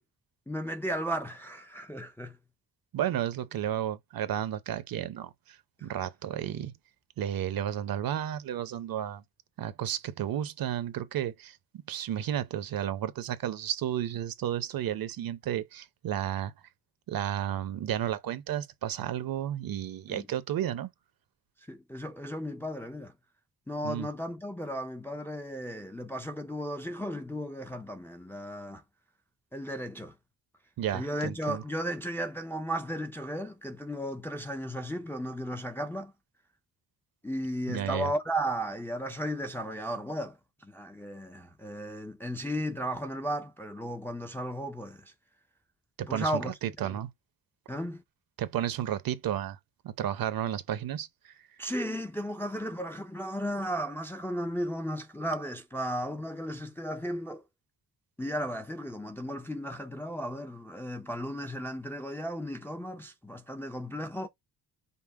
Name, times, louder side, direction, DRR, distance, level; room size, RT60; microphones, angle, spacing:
voice 1, 0.5-2.4 20.1-20.3 21.7-23.1 23.7-28.8 29.5-30.1 30.9-36.1 37.2-45.1 46.1-46.5 46.8-47.0 47.7-48.0 51.6-57.4 58.2-64.3, equal, 5° left, 0.4 m, -35 dB
voice 2, 2.9-6.7 7.2-9.2 9.6-11.6 11.9-16.5 17.1-20.9 23.8-24.1 30.8-31.6 37.7-38.1 46.0-47.1 48.4-49.6 49.8-51.4, right 11 dB, 60° right, 0.7 m, -32 dB
5.5 x 2.0 x 4.6 m
wide cardioid pair, 150°, 39 cm